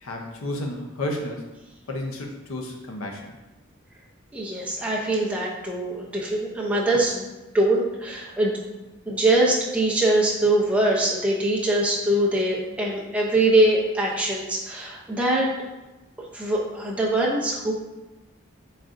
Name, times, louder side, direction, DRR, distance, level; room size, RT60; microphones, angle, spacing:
voice 1, 0.0-1.5 1.9-3.3, left 1 dB, 90° left, 2 dB, 0.6 m, -32 dB
voice 2, 4.3-7.2 7.5-8.5 9.1-15.5 16.3-17.7, right 1 dB, 5° right, -4 dB, 0.5 m, -23 dB
4.0 x 3.7 x 2.5 m, 1.1 s
head